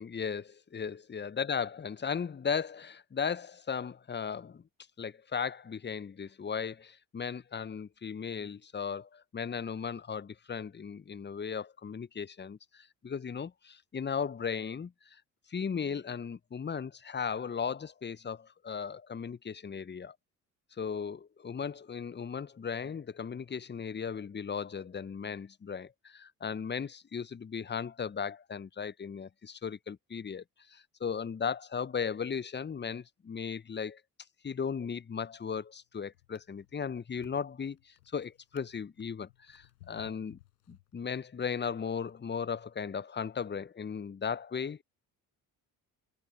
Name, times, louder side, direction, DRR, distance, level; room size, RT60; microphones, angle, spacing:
voice 1, 0.0-4.6 5.0-14.9 15.5-20.1 20.8-30.4 30.7-34.0 34.4-40.4 40.7-44.8, left 6 dB, 20° left, 1.1 m, -36 dB
Drawer open or close, 35.3-35.6 36.1-41.3 42.0-42.2, left 16 dB, 75° left, 5.4 m, -60 dB
figure-of-eight pair, 50°, 48 cm